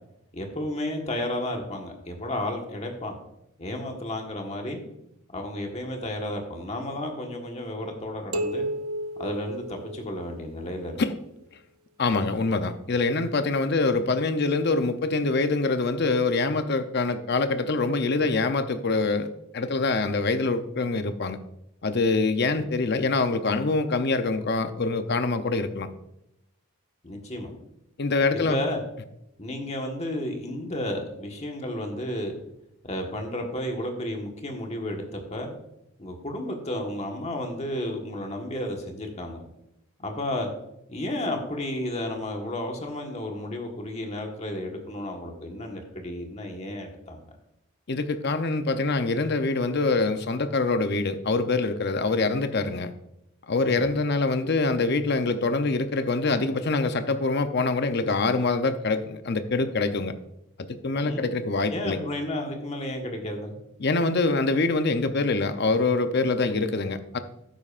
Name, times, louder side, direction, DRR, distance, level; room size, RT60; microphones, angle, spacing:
voice 1, 0.3-3.1 3.6-4.8 5.3-8.6 9.2-11.0 22.6-22.7 27.0-27.5 28.3-28.8 29.4-32.4 32.8-35.5 36.0-39.5 40.0-40.5 40.9-47.2 53.6-53.9 61.0-61.3 61.7-63.5, left 1 dB, 30° left, 2 dB, 1.4 m, -32 dB
sound 1, 8.3-10.7, right 1 dB, 75° right, 0.7 m, -33 dB
voice 2, 12.0-21.4 21.8-25.9 28.0-28.6 47.9-52.9 53.5-60.1 60.8-62.0 63.8-67.2, left 3 dB, 50° left, 9 dB, 0.7 m, -25 dB
12.0 x 9.8 x 2.5 m, 0.82 s
head